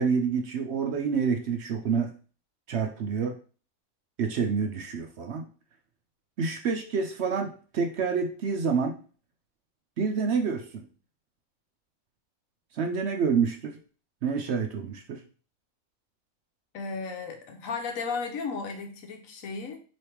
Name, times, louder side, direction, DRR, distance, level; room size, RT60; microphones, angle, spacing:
voice 1, 0.0-2.1 2.7-3.4 4.2-5.5 6.4-9.0 10.0-10.9 12.7-13.8 14.2-15.2, right 5 dB, 65° right, 4 dB, 0.8 m, -28 dB
voice 2, 16.7-19.8, left 4 dB, 75° left, 4 dB, 1.2 m, -34 dB
3.4 x 3.1 x 4.4 m, 0.38 s
omnidirectional pair, 1.4 m